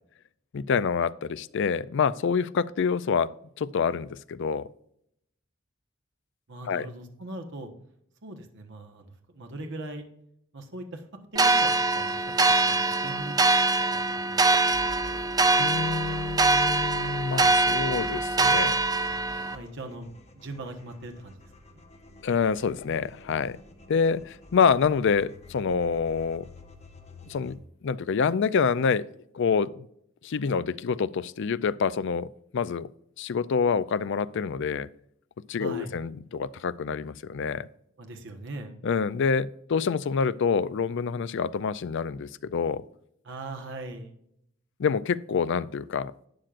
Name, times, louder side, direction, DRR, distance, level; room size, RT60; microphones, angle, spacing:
voice 1, 0.5-3.3 3.6-4.7 6.7-6.9 15.6-19.4 22.2-23.6 23.9-26.5 27.3-29.1 29.3-29.9 30.2-32.9 33.2-34.9 35.5-37.7 38.8-42.8 44.8-46.1, left 6 dB, 60° left, 0.4 m, -27 dB
voice 2, 6.5-7.7 8.2-10.0 10.5-11.0 11.3-12.3 12.6-13.4 13.7-14.7 19.5-20.1 20.3-21.8 35.6-35.9 38.0-38.7 43.2-44.1, right 2 dB, 60° right, 1.3 m, -40 dB
sound 1, 11.4-19.6, right 3 dB, 20° right, 0.5 m, -23 dB
sound 2, 14.7-27.6, equal, 30° left, 1.3 m, -47 dB
11.5 x 8.9 x 2.5 m
head